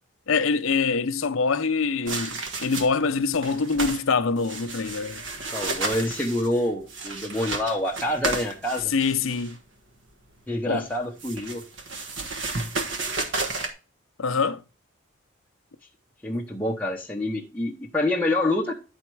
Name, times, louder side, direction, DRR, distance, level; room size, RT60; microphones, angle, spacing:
voice 1, 0.3-5.2 8.9-9.6 10.7-10.9 14.2-14.6, left 4 dB, 65° left, 0.6 m, -24 dB
sound 1, 2.1-3.1 3.3-4.0 4.4-9.5 10.9-13.7, right 3 dB, 55° right, 1.3 m, -32 dB
voice 2, 5.5-8.9 10.5-11.6 16.2-18.7, left 1 dB, 10° left, 0.8 m, -27 dB
10.5 x 4.3 x 4.6 m
head